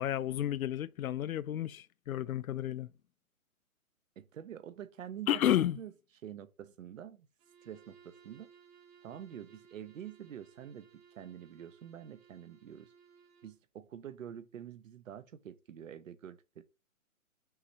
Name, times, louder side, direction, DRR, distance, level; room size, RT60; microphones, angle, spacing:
voice 1, 0.0-2.9 5.3-5.8, left 11 dB, 75° left, 0.5 m, -31 dB
voice 2, 4.2-5.9 6.2-7.3 7.6-8.5 9.0-12.9 13.4-16.6, right 10 dB, 65° right, 0.8 m, -47 dB
Bowed string instrument, 7.4-13.6, right 7 dB, 45° right, 1.3 m, -61 dB
5.7 x 3.2 x 2.8 m
hypercardioid pair, 140°, 42 cm